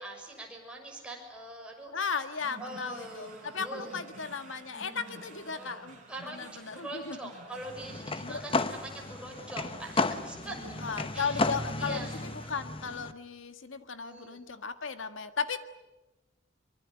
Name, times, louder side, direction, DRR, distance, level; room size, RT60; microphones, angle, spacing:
voice 1, 0.0-1.9 2.6-4.0 4.8-5.8 6.1-10.6 11.1-11.4 11.8-12.2 14.0-14.4, right 1 dB, 5° right, 0 dB, 6.4 m, -43 dB
voice 2, 1.9-7.3 8.2-8.5 10.8-15.6, left 5 dB, 80° left, 10 dB, 1.7 m, -36 dB
sound 1, 2.4-12.5, right 2 dB, 40° right, 4.4 m, -50 dB
sound 2, 7.6-13.1, left 3 dB, 30° left, 1.1 m, -33 dB
24.0 x 23.5 x 9.3 m, 1.0 s
head